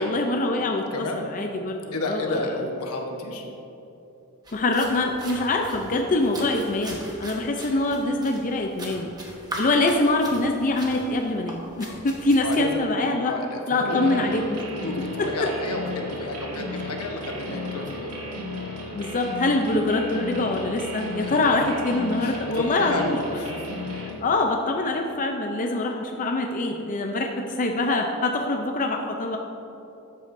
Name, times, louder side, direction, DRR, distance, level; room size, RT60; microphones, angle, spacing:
voice 1, 0.0-2.6 4.5-9.1 9.6-13.3 13.7-14.6 15.0-15.5 18.9-23.4 23.9-29.4, left 2 dB, 35° left, 2 dB, 0.5 m, -24 dB
voice 2, 0.9-1.3 1.9-3.4 12.4-12.8 13.3-14.2 14.7-15.0 15.2-18.1 21.2-21.4 22.2-23.6, left 2 dB, 80° left, 2 dB, 1.1 m, -31 dB
sound 1, 4.4-12.6, right 1 dB, 20° right, 1.1 m, -39 dB
sound 2, 13.9-24.1, left 2 dB, 80° right, 1.6 m, -35 dB
12.5 x 8.3 x 2.6 m, 2.9 s
head